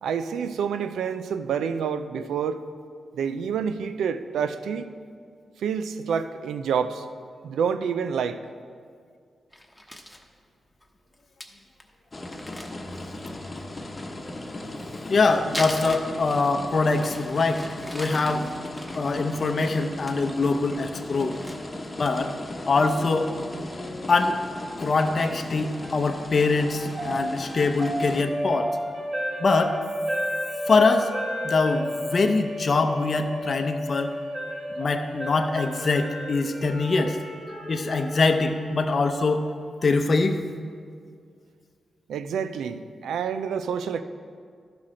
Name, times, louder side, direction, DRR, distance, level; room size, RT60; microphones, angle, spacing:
voice 1, 0.0-2.6 3.1-4.9 5.6-7.0 7.4-8.4 42.1-44.0, right 7 dB, 90° right, 11 dB, 0.4 m, -28 dB
Crumpling crinkling, 9.5-10.2 10.8-10.9 11.1-11.2 11.4-11.5 11.8-11.9 12.2-13.5 14.7-16.6 16.9-20.1 20.5-20.8 21.1-22.3 22.7-22.8 23.2-23.7, left 1 dB, 5° left, 1.0 m, -40 dB
sound 1, 12.1-28.2, left 1 dB, 30° left, 0.9 m, -37 dB
voice 2, 15.1-17.7 17.9-18.5 18.9-21.4 22.0-22.3 22.7-23.3 24.1-24.4 24.8-28.7 29.4-29.8 30.7-31.1 31.4-34.1 34.8-37.2 37.7-39.5 39.8-40.4, left 3 dB, 55° left, 5 dB, 0.6 m, -23 dB
sound 2, 25.8-39.9, equal, 65° right, 2.4 m, -33 dB
11.5 x 5.8 x 4.9 m, 2.1 s
cardioid pair, 55°, 0 cm